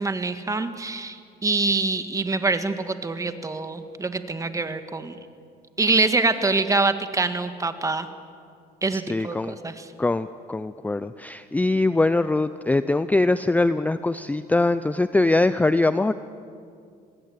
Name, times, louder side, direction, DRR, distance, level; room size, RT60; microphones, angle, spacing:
voice 1, 0.0-5.2 5.8-8.1 8.8-9.9, right 3 dB, 20° right, 9 dB, 1.8 m, -25 dB
voice 2, 8.9-9.6 10.0-16.1, left 2 dB, 10° left, 13 dB, 0.6 m, -22 dB
26.0 x 20.5 x 9.5 m, 2.3 s
cardioid pair, 110°, 17 cm